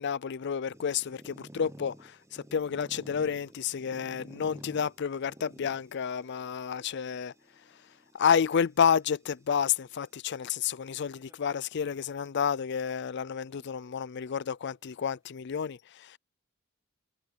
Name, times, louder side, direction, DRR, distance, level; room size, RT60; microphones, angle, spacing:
voice 1, 0.0-7.3 8.1-16.2, left 7 dB, 60° left, 0.4 m, -30 dB
sound 1, 0.7-10.2 11.0-11.5 11.8-11.9 12.3-12.4 13.2-14.4, right 1 dB, 15° right, 0.8 m, -53 dB
head